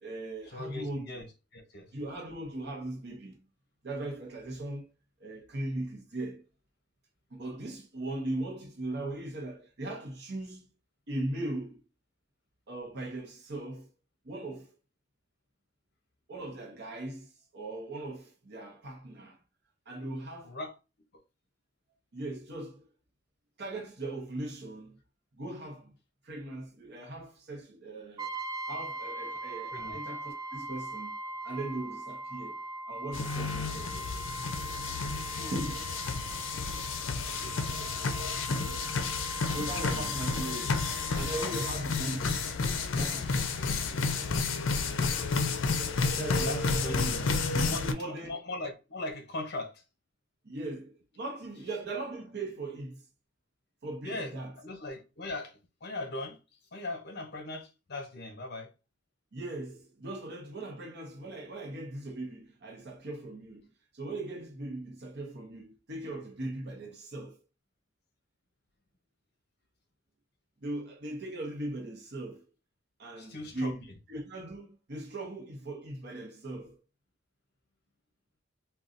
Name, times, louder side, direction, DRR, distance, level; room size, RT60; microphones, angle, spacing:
voice 1, 0.0-1.2 1.9-3.4 3.8-4.9 5.2-6.4 7.3-10.7 11.1-11.8 12.7-13.9 14.2-14.7 16.3-19.4 19.9-20.6 22.1-22.9 23.6-25.0 25.4-25.9 26.2-28.3 28.7-31.2 31.4-32.6 32.9-34.2 35.5-35.9 37.0-38.0 38.5-39.1 39.5-40.8 41.1-42.5 43.0-43.7 46.1-48.3 50.4-53.0 53.8-54.5 59.3-63.7 63.9-67.4 70.6-72.4 73.0-73.8 74.1-76.8, right 2 dB, 60° right, 0.8 m, -39 dB
voice 2, 0.5-1.3 1.5-1.9 20.4-20.7 29.7-30.0 35.4-35.5 39.6-40.2 46.4-47.3 47.6-49.8 54.0-56.4 56.7-58.7 73.2-73.8, left 2 dB, 60° left, 0.8 m, -39 dB
Brass instrument, 28.2-41.8, right 2 dB, 20° right, 0.4 m, -40 dB
sound 1, 33.1-47.9, left 4 dB, 80° left, 0.5 m, -31 dB
3.8 x 2.3 x 2.5 m
head